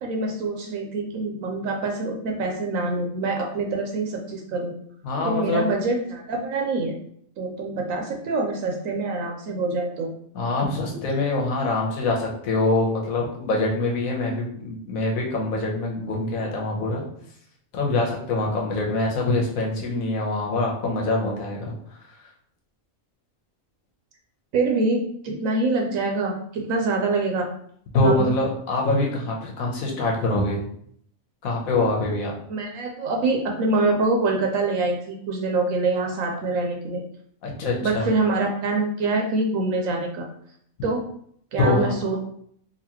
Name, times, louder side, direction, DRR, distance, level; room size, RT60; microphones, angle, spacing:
voice 1, 0.0-4.7 5.2-6.9 7.4-10.1 24.5-27.5 28.0-28.3 32.5-37.0 37.8-40.3 40.8-41.0 41.5-42.2, right 3 dB, 80° right, 1 dB, 1.0 m, -25 dB
voice 2, 5.0-5.7 10.3-17.0 17.7-22.0 27.9-30.6 31.4-32.3 37.4-38.1 41.6-41.9, left 2 dB, 85° left, -1 dB, 1.3 m, -24 dB
4.0 x 2.6 x 2.9 m, 0.65 s
omnidirectional pair, 1.4 m